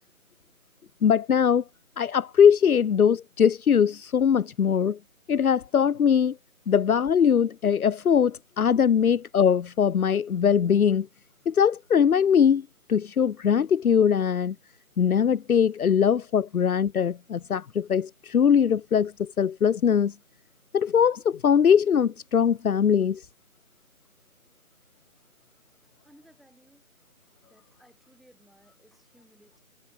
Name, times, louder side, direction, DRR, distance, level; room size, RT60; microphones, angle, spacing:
voice 1, 1.0-1.6 2.0-5.0 5.3-6.4 6.7-11.1 11.5-14.5 15.0-20.1 20.7-23.2, left 7 dB, 80° left, 0.7 m, -21 dB
voice 2, 26.0-26.8 27.4-29.6, equal, ahead, 6.7 m, -59 dB
figure-of-eight pair, 165°, 43 cm